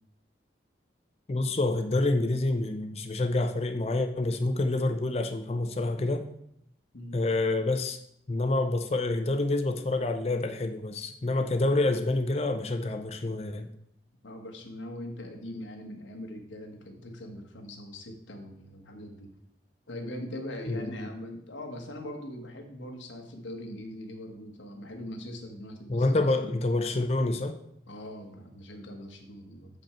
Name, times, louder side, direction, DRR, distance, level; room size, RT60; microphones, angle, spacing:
voice 1, 1.3-6.3 7.1-8.0 8.3-13.7 20.7-21.1 25.9-27.6, left 2 dB, 35° left, 7 dB, 0.4 m, -27 dB
voice 2, 14.2-19.3 19.9-26.5 27.9-29.7, left 1 dB, 90° left, 3 dB, 1.2 m, -41 dB
7.2 x 5.2 x 4.3 m, 0.73 s
head